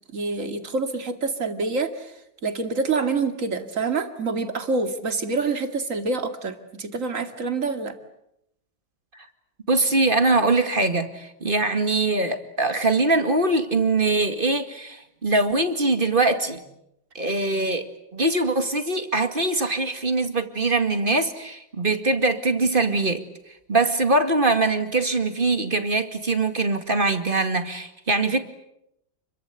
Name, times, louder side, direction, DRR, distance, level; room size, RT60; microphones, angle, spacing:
voice 1, 0.1-8.0, right 4 dB, 45° right, 7 dB, 2.6 m, -27 dB
voice 2, 9.7-16.6 17.1-23.2 23.7-28.4, right 2 dB, 30° right, 8 dB, 2.2 m, -22 dB
29.5 x 23.0 x 8.4 m, 0.81 s
omnidirectional pair, 2.0 m